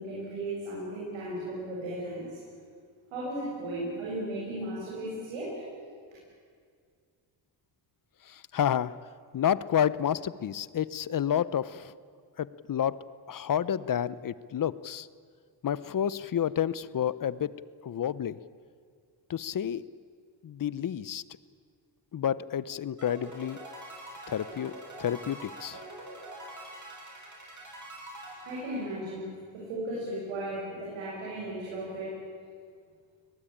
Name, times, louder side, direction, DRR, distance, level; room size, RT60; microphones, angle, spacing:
voice 1, 0.0-2.4 3.1-5.6 28.4-29.3 29.5-32.1, right 1 dB, 90° right, -6 dB, 7.4 m, -35 dB
voice 2, 8.3-8.9 9.3-11.9 12.4-13.0 13.3-15.1 15.6-17.5 17.8-18.4 19.3-19.8 20.4-21.2 22.1-23.6 24.3-25.8, left 9 dB, 45° left, 18 dB, 0.9 m, -30 dB
sound 1, 23.0-29.3, right 1 dB, 40° right, 7.8 m, -45 dB
24.0 x 19.5 x 8.7 m, 2.1 s
cardioid pair, 75°, 46 cm